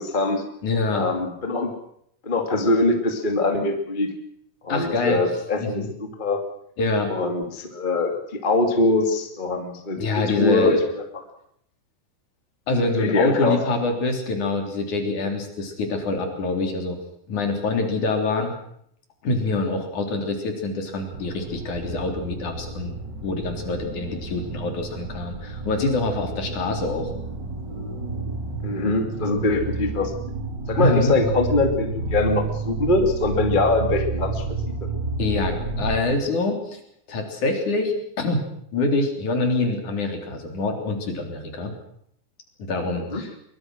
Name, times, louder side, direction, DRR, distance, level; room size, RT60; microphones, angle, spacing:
voice 1, 0.0-0.4 0.9-1.7 2.2-4.1 4.6-6.4 7.1-11.2 13.0-13.6 13.8-14.0 28.6-30.1 30.7-34.4 43.1-43.2, left 2 dB, 20° left, 4 dB, 1.1 m, -23 dB
voice 2, 0.6-1.1 4.7-5.2 5.6-5.9 6.8-7.1 10.0-10.8 12.7-17.0 17.3-18.5 19.2-22.9 23.2-27.1 30.8-31.1 35.2-36.8 37.1-38.5 38.7-41.7 42.6-43.3, left 2 dB, 40° left, 4 dB, 4.4 m, -25 dB
sound 1, 21.1-36.0, right 3 dB, 25° right, 3.2 m, -31 dB
23.0 x 22.5 x 6.3 m, 0.70 s
omnidirectional pair, 5.6 m